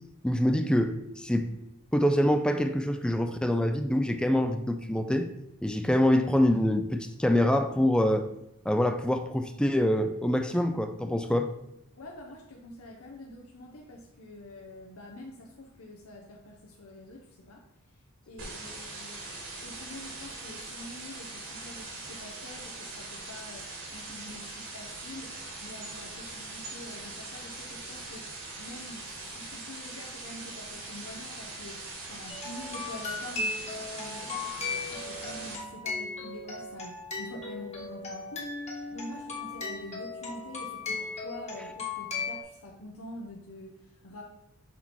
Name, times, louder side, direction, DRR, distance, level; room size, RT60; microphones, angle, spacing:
voice 1, 0.2-1.5 1.9-5.3 5.6-8.3 8.7-11.5, left 1 dB, 5° left, 7 dB, 0.3 m, -25 dB
voice 2, 12.0-17.6 18.3-19.2 19.6-44.2, left 1 dB, 75° left, 0 dB, 0.8 m, -46 dB
sound 1, 18.4-35.6, right 2 dB, 60° right, 1.9 m, -41 dB
sound 2, 32.3-42.4, left 3 dB, 30° left, 1.3 m, -37 dB
6.0 x 4.4 x 4.2 m, 0.84 s
head